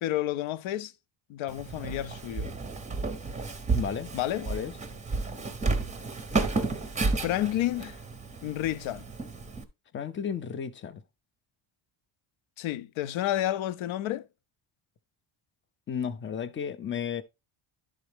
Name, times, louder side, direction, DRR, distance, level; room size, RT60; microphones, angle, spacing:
voice 1, 0.0-0.9 1.3-2.5 4.1-4.4 7.2-8.0 8.4-9.1 12.6-14.3, left 13 dB, 70° left, 0.6 m, -30 dB
Walk footsteps, 1.5-9.6, right 3 dB, 15° right, 0.6 m, -32 dB
voice 2, 3.7-4.1 4.4-4.7 9.9-11.0 15.9-17.2, left 7 dB, 25° left, 0.4 m, -33 dB
11.0 x 4.1 x 3.3 m
cardioid pair, 150°, 49 cm